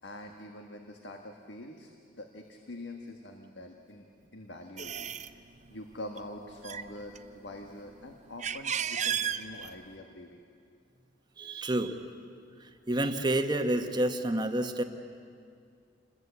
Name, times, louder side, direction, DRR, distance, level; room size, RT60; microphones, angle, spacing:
voice 1, 0.0-5.4 5.7-10.4, left 1 dB, 65° left, 3 dB, 1.6 m, -45 dB
sound 1, 4.8-5.3 6.0-6.2 6.5-7.6 8.1-9.9, right 8 dB, 40° right, 0.7 m, -33 dB
voice 2, 11.4-12.0 12.6-14.8, right 1 dB, 20° right, 6 dB, 1.3 m, -29 dB
27.5 x 21.0 x 8.3 m, 2.3 s
head